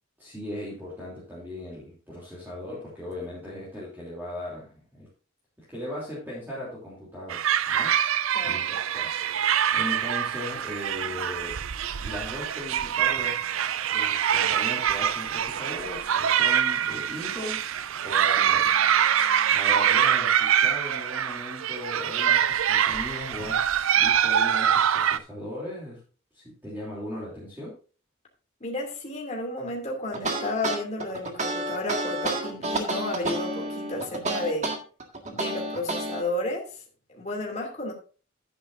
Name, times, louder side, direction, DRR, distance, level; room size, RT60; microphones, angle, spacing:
voice 1, 0.2-5.1 5.7-7.9 8.4-9.2 9.7-11.6 12.0-13.4 13.9-17.6 18.0-18.7 19.5-23.6 23.9-26.0 26.3-27.8, left 1 dB, 10° right, -7 dB, 3.1 m, -38 dB
sound 1, 7.3-25.2, right 9 dB, 80° right, 0.5 m, -24 dB
voice 2, 28.6-34.7 35.3-36.8 37.1-37.9, left 2 dB, 35° left, 0 dB, 2.7 m, -32 dB
sound 2, 30.1-36.2, right 2 dB, 35° right, 1.7 m, -30 dB
11.5 x 9.7 x 2.6 m, 0.37 s
head